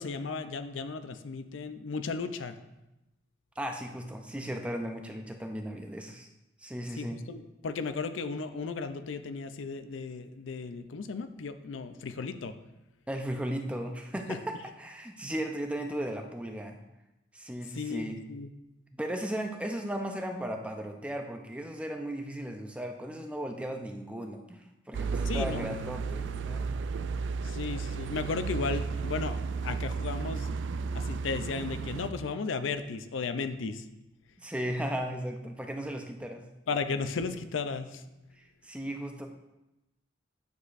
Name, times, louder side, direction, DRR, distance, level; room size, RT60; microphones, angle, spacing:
voice 1, 0.0-2.6 7.0-12.6 14.3-14.4 17.7-18.5 25.3-25.6 27.4-30.5 30.9-33.8 36.7-38.0, left 4 dB, 90° left, 10 dB, 0.5 m, -35 dB
voice 2, 3.6-6.3 6.6-7.2 13.1-16.8 17.3-18.2 18.9-26.7 34.4-36.5 38.4-39.3, equal, 5° right, 4 dB, 0.5 m, -36 dB
sound 1, 24.9-32.1, right 5 dB, 75° right, 0.3 m, -33 dB
9.5 x 6.5 x 2.5 m, 0.95 s
head